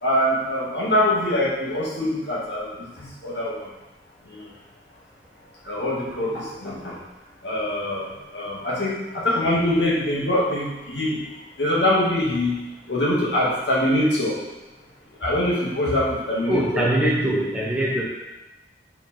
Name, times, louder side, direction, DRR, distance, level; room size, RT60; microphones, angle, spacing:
voice 1, 0.0-3.7 4.3-4.4 5.7-7.0 7.4-11.2 11.6-12.5 12.9-14.4 15.2-16.9, left 1 dB, 85° left, -6 dB, 2.1 m, -23 dB
voice 2, 16.5-18.0, right 1 dB, 5° right, -6 dB, 1.3 m, -22 dB
5.2 x 4.9 x 4.4 m, 1.0 s
head